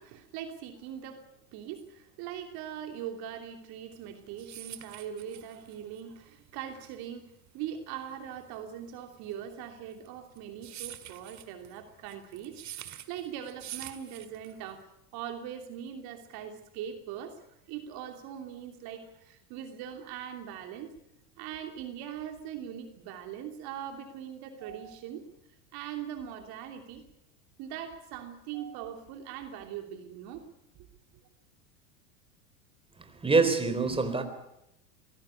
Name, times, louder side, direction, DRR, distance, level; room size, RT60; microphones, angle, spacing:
voice 1, 0.0-14.9 15.1-21.0 21.4-25.3 25.7-27.0 27.6-30.5, right 9 dB, 55° right, 3.1 m, -41 dB
sound 1, 4.0-14.8, right 12 dB, 40° right, 2.0 m, -46 dB
voice 2, 33.0-34.2, right 4 dB, 10° right, 4.1 m, -25 dB
22.0 x 16.5 x 9.8 m
hypercardioid pair, 95°, 43 cm